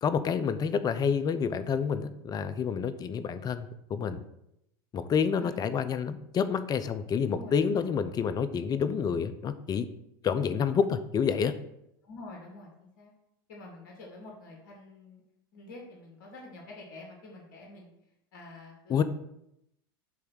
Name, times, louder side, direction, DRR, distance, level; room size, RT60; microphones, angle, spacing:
voice 1, 0.0-4.2 4.9-9.9 10.2-11.5 18.9-19.0, left 6 dB, 30° left, 12 dB, 0.7 m, -28 dB
voice 2, 7.3-7.9 8.2-8.3 12.0-13.1 13.5-15.2 15.5-17.9 18.3-19.0, left 2 dB, 65° left, -1 dB, 2.1 m, -47 dB
8.3 x 3.4 x 6.4 m, 0.81 s
hypercardioid pair, 100°, 12 cm